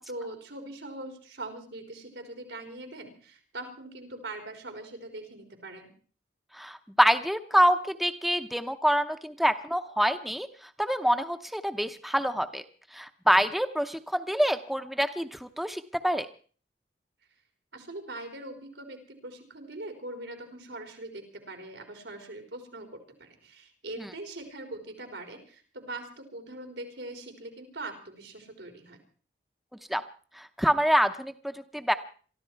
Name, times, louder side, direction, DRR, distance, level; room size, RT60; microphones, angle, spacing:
voice 1, 0.1-5.9 17.7-29.0, right 2 dB, 90° right, 5 dB, 3.9 m, -42 dB
voice 2, 6.6-10.5 10.8-12.6 12.9-16.3 24.0-24.1 29.9-30.0 30.4-31.9, equal, ahead, 8 dB, 0.7 m, -26 dB
23.5 x 13.5 x 4.6 m, 0.42 s
head